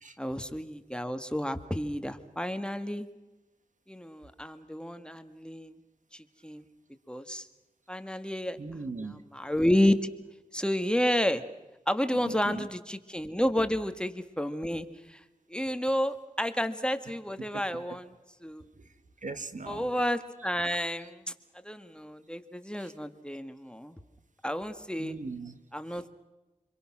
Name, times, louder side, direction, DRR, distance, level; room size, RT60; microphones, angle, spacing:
voice 1, 0.2-3.1 3.9-5.7 6.1-6.6 7.1-7.5 7.9-8.6 9.0-10.0 10.5-11.4 11.9-15.2 15.5-18.1 18.4-18.7 19.7-21.2 21.6-23.9 24.4-25.2 25.7-26.1, left 1 dB, 5° left, 1.8 m, -30 dB
voice 2, 8.6-9.2 12.1-12.7 17.5-17.8 19.2-19.9 22.8-22.9 25.0-25.6, right 3 dB, 65° right, 1.8 m, -39 dB
28.5 x 22.5 x 6.1 m
cardioid pair, 45°, 14 cm